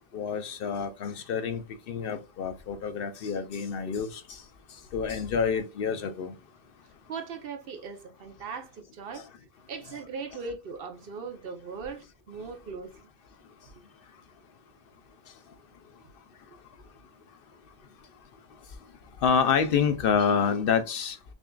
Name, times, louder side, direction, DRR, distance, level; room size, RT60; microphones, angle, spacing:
voice 1, 0.1-4.4 4.9-6.3 9.1-9.2 19.2-21.2, left 6 dB, 65° left, 0.7 m, -28 dB
voice 2, 7.1-9.2 9.7-13.1, right 5 dB, 65° right, 0.9 m, -39 dB
6.1 x 2.4 x 2.2 m
omnidirectional pair, 1.1 m